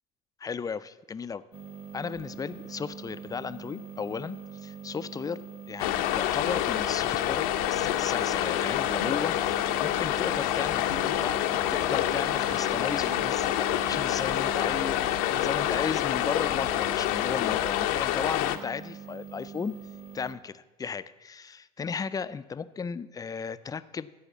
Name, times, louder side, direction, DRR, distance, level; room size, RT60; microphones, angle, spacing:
voice 1, 0.4-1.4 1.9-19.7 20.1-24.1, left 6 dB, 20° left, 14 dB, 0.4 m, -35 dB
sound 1, 1.5-20.3, right 6 dB, 30° right, 1.6 m, -43 dB
sound 2, 5.8-18.6, left 13 dB, 70° left, 0.7 m, -27 dB
14.0 x 4.9 x 7.1 m, 1.1 s
hypercardioid pair, 75°, 19 cm